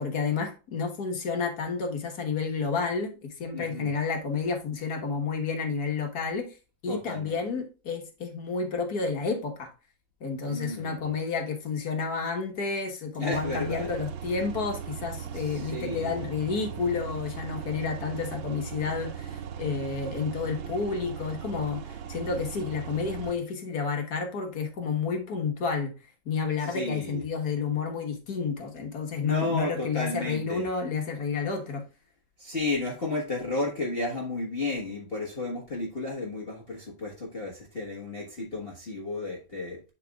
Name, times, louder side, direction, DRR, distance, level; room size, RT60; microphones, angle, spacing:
voice 1, 0.0-6.5 6.8-9.7 10.2-25.9 26.2-31.8, left 5 dB, 55° left, 1.7 m, -30 dB
voice 2, 3.5-3.9 6.9-7.3 10.5-11.1 13.2-13.9 15.3-16.2 26.6-27.2 29.2-30.7 32.4-39.9, left 2 dB, 35° left, 1.4 m, -33 dB
sound 1, 13.3-23.3, right 8 dB, 85° right, 1.5 m, -38 dB
11.0 x 4.1 x 2.3 m
omnidirectional pair, 2.1 m